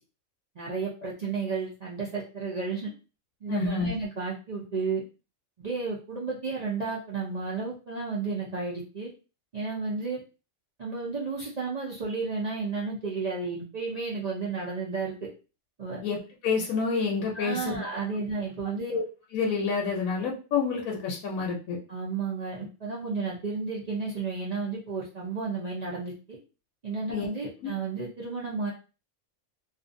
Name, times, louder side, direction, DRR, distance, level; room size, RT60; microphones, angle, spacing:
voice 1, 0.6-2.9 3.4-5.0 5.6-9.1 9.5-10.2 10.8-15.3 15.8-16.0 17.3-18.9 21.9-26.4 26.8-28.7, right 4 dB, 65° right, -5 dB, 0.4 m, -32 dB
voice 2, 3.5-3.9 16.0-17.9 18.9-19.0 19.3-21.8 27.1-27.3 27.6-27.7, left 5 dB, 80° left, -1 dB, 1.0 m, -28 dB
2.5 x 2.4 x 2.5 m, 0.33 s
omnidirectional pair, 1.4 m